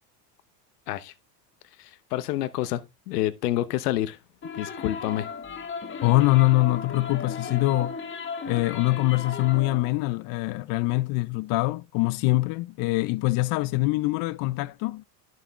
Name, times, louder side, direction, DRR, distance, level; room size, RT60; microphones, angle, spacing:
voice 1, 1.8-4.2 4.5-5.3, left 14 dB, 90° left, 1.0 m, -28 dB
sound 1, 4.4-9.9, left 5 dB, 25° left, 1.5 m, -35 dB
voice 2, 6.0-8.0 8.4-15.0, left 20 dB, 50° left, 0.5 m, -24 dB
11.5 x 6.4 x 3.6 m
supercardioid pair, 115°, 46 cm